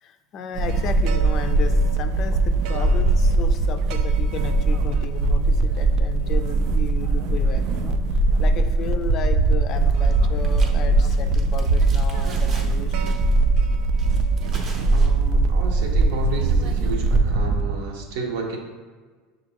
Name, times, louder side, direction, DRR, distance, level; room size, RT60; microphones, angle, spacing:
voice 1, 0.0-13.2, left 6 dB, 45° left, 8 dB, 0.3 m, -34 dB
sound 1, 0.5-17.9, right 3 dB, 60° right, 0.3 m, -20 dB
sound 2, 9.9-10.2 10.4-12.8 13.1-13.4 14.0-15.1, right 3 dB, 35° right, 0.7 m, -42 dB
voice 2, 14.9-18.6, right 3 dB, 80° right, 1 dB, 0.8 m, -31 dB
6.0 x 2.5 x 2.9 m, 1.4 s
supercardioid pair, 120°, 0 cm